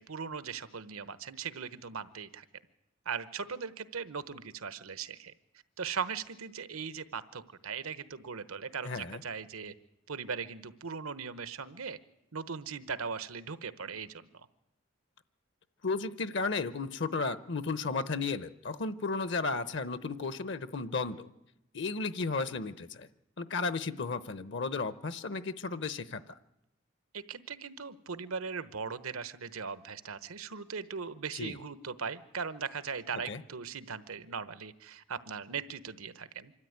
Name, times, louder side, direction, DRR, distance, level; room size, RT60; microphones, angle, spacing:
voice 1, 0.0-2.4 3.0-5.3 5.8-9.7 10.1-12.0 12.3-14.3 27.1-36.5, right 6 dB, 85° right, 14 dB, 1.1 m, -39 dB
voice 2, 8.8-9.2 15.8-21.3 21.7-23.1 23.4-26.4 31.4-31.6 33.3-33.4, left 4 dB, 55° left, 14 dB, 0.7 m, -34 dB
25.5 x 13.5 x 9.5 m, 0.88 s
head